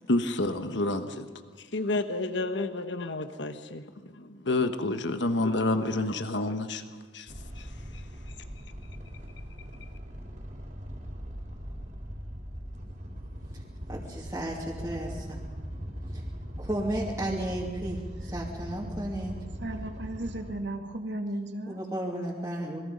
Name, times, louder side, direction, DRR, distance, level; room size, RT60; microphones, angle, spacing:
voice 1, 0.1-1.3 1.7-6.8 7.1-7.7, left 2 dB, 90° left, 8 dB, 1.3 m, -29 dB
sound 1, 7.3-20.5, equal, 45° right, 3.5 m, -40 dB
voice 2, 13.9-15.4 16.6-19.3 21.7-22.8, right 1 dB, 15° right, -6 dB, 2.8 m, -33 dB
voice 3, 19.6-21.8, right 1 dB, 85° right, 4 dB, 2.2 m, -35 dB
27.0 x 22.0 x 5.3 m, 1.5 s
head